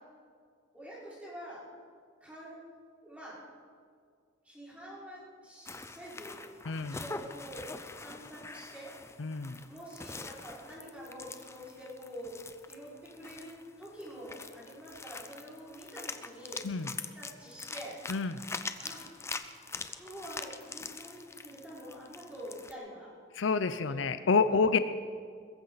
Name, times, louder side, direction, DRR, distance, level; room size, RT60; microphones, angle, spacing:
voice 1, 0.7-1.6 2.2-2.6 3.0-3.4 4.4-8.9 9.7-12.4 12.7-16.6 17.2-18.0 18.8-19.1 19.8-23.1 23.8-24.0 24.5-24.7, equal, 5° right, -8 dB, 5.4 m, -46 dB
sound 1, 5.7-22.7, left 3 dB, 15° left, 0.6 m, -44 dB
voice 2, 6.7-7.0 9.2-9.6 16.6-16.9 18.1-18.4 23.3-24.8, left 4 dB, 75° left, 11 dB, 0.6 m, -28 dB
21.5 x 14.5 x 4.1 m, 2.1 s
head